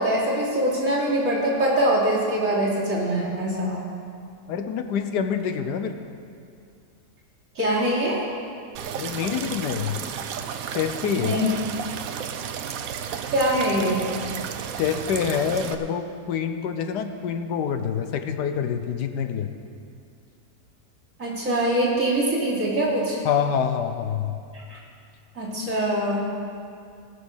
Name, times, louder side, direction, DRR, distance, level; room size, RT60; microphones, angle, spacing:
voice 1, 0.0-3.8 7.6-8.2 11.2-11.5 13.3-14.1 21.2-23.2 24.7-24.8 25.4-26.3, right 1 dB, 50° right, -6 dB, 3.1 m, -23 dB
voice 2, 4.5-6.0 8.9-10.0 10.7-11.3 14.8-19.5 23.2-24.4, left 7 dB, 85° left, 8 dB, 1.4 m, -26 dB
Fountain dripping, 8.8-15.8, right 8 dB, 65° right, 1.0 m, -33 dB
18.5 x 6.5 x 6.4 m, 2.4 s
omnidirectional pair, 1.8 m